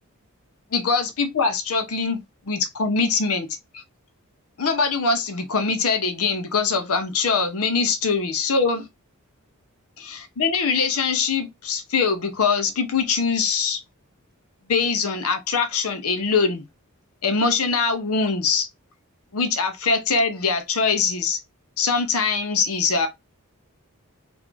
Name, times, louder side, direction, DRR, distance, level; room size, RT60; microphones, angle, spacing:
voice 1, 0.7-2.2 2.5-3.5 3.7-3.8 4.6-8.9 10.0-13.8 14.7-16.6 17.2-18.7 19.3-21.4 21.8-23.1, left 5 dB, 75° left, 0.7 m, -23 dB
3.0 x 2.5 x 3.5 m
head